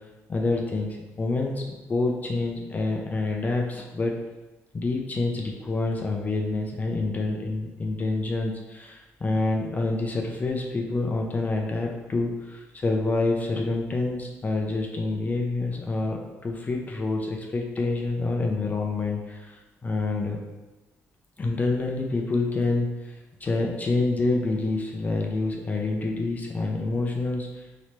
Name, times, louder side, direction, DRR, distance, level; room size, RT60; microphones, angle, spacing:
voice 1, 0.3-1.6 1.9-4.1 4.7-20.4 21.4-27.6, left 2 dB, 30° left, 1 dB, 0.4 m, -27 dB
2.9 x 2.9 x 3.2 m, 1.1 s
cardioid pair, 100°, 6 cm